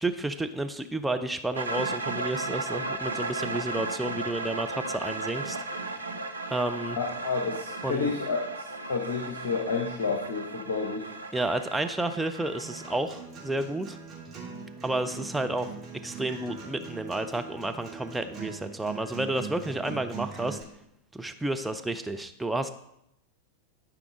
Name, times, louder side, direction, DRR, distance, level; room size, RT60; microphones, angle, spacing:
voice 1, 0.0-6.1 6.5-7.0 7.8-8.1 11.3-14.0 14.8-15.7 16.0-20.6 21.1-22.7, right 2 dB, 5° right, 6 dB, 0.5 m, -31 dB
sound 1, 1.6-13.0, right 2 dB, 80° right, 0.6 m, -35 dB
voice 2, 7.0-11.1 19.9-20.0, left 4 dB, 60° left, 3 dB, 1.0 m, -30 dB
Acoustic guitar, 12.6-20.6, right 6 dB, 20° right, 2.7 m, -41 dB
12.0 x 4.8 x 3.7 m, 0.80 s
figure-of-eight pair, 90°, 0 cm